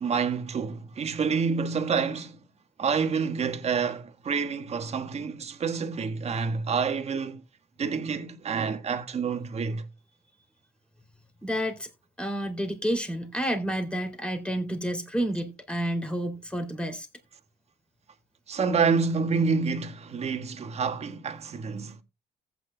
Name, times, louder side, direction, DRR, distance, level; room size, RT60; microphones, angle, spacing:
voice 1, 0.0-2.4 2.8-7.4 7.8-9.9 18.5-22.0, right 5 dB, 40° right, 1.6 m, -28 dB
voice 2, 11.4-11.9 12.2-17.1, equal, 5° left, 3.0 m, -30 dB
15.0 x 8.9 x 2.3 m
cardioid pair, 110°, 17 cm